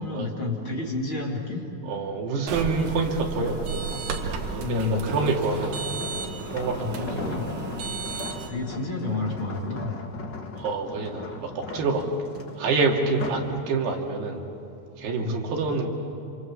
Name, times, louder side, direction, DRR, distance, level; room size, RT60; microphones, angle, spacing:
voice 1, 0.0-1.6 4.6-5.2 6.8-7.5 8.5-10.0 15.2-15.4, left 3 dB, 35° left, -1 dB, 2.8 m, -30 dB
voice 2, 1.8-3.9 4.5-5.8 6.5-7.7 10.6-12.0 12.6-14.4 15.0-15.9, right 4 dB, 85° right, 0 dB, 4.5 m, -27 dB
sound 1, 2.5-8.5, right 5 dB, 60° right, 2.7 m, -34 dB
sound 2, 3.4-13.5 14.0-14.3, left 3 dB, 55° left, 1.2 m, -38 dB
27.5 x 27.0 x 7.4 m, 2.9 s
omnidirectional pair, 4.6 m